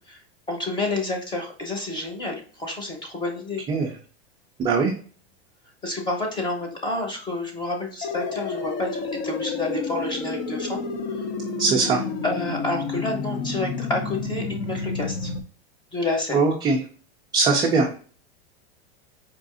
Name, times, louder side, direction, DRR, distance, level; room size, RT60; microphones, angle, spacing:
voice 1, 0.5-3.6 5.8-10.8 11.1-11.2 12.2-15.3 15.9-16.4, left 2 dB, 15° left, 2 dB, 0.9 m, -29 dB
voice 2, 4.6-4.9 11.6-12.0 16.3-16.8 17.3-17.9, right 4 dB, 15° right, -1 dB, 0.3 m, -20 dB
sound 1, 8.0-15.4, left 4 dB, 45° left, 0.6 m, -30 dB
4.7 x 2.5 x 2.5 m, 0.41 s
supercardioid pair, 145°, 32 cm